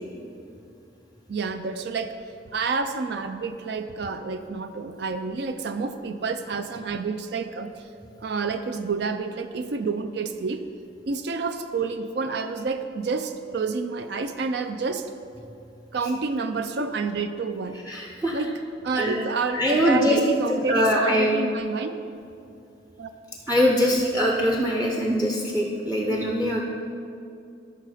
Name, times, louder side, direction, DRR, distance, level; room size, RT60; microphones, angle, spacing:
voice 1, 1.3-2.1 2.5-7.8 8.2-10.6 11.1-15.1 15.9-17.8 18.3-18.5 18.8-22.0 23.0-23.1 26.0-26.2, right 4 dB, 55° right, 9 dB, 0.4 m, -29 dB
voice 2, 17.9-18.4 19.0-19.3 19.5-20.2 20.5-21.4 23.5-26.6, equal, 10° right, -1 dB, 0.6 m, -23 dB
12.5 x 5.5 x 4.9 m, 2.6 s
head